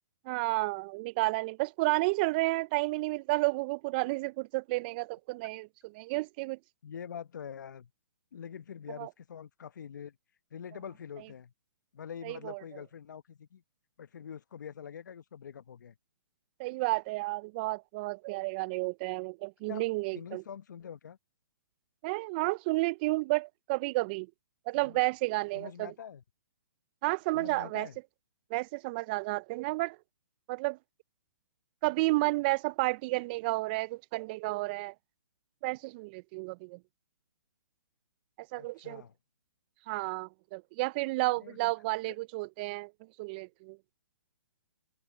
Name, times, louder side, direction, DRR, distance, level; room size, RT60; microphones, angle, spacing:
voice 1, 0.3-5.7 5.9-6.6 9.0-9.1 12.2-12.6 16.6-20.4 22.0-24.3 24.7-25.9 27.0-27.9 28.5-30.0 30.5-30.8 31.8-34.9 35.6-36.8 38.4-39.0 39.9-42.9 43.2-43.8, right 23 dB, 30° right, 0.4 m, -31 dB
voice 2, 6.8-7.9 8.3-10.2 10.5-11.5 11.9-13.6 14.0-15.9 19.7-19.8 20.1-21.2 24.8-25.0 25.5-26.2 27.3-28.0 38.5-39.1 41.4-41.7 42.1-42.2, left 8 dB, 70° left, 1.0 m, -45 dB
hypercardioid pair, 140°, 10 cm